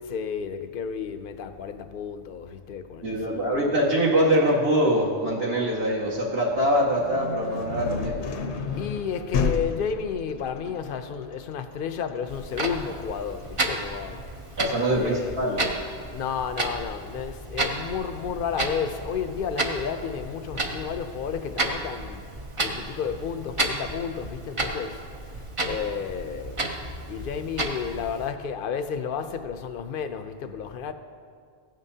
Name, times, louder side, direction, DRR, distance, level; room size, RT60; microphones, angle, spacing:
voice 1, 0.1-3.7 8.8-14.2 14.9-15.3 16.1-22.2 22.6-25.0 25.7-30.9, left 7 dB, 60° left, 0.7 m, -32 dB
voice 2, 3.0-8.3 14.6-15.6, equal, 60° right, 2.0 m, -23 dB
sound 1, 6.5-16.2, left 5 dB, 85° left, 1.1 m, -33 dB
Clock, 12.3-28.3, right 2 dB, 30° right, 0.8 m, -32 dB
16.0 x 9.0 x 2.8 m
omnidirectional pair, 1.1 m